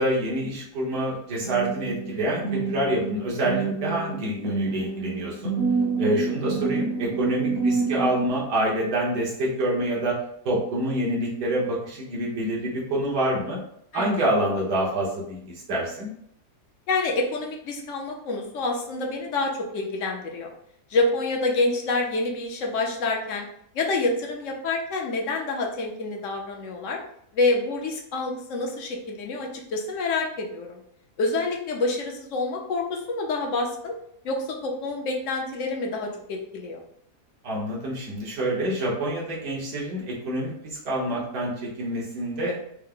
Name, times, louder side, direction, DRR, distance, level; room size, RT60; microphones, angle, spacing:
voice 1, 0.0-5.5 6.0-10.2 10.5-13.6 13.9-16.1 37.4-42.6, right 1 dB, 75° right, -4 dB, 1.8 m, -27 dB
sound 1, 1.4-8.3, right 4 dB, 45° right, 1.0 m, -28 dB
voice 2, 16.9-20.5 20.9-23.4 23.7-27.0 27.3-30.8 31.2-34.0 34.2-36.8, left 3 dB, 60° left, 1 dB, 0.9 m, -27 dB
4.5 x 2.1 x 3.7 m, 0.70 s
omnidirectional pair, 1.7 m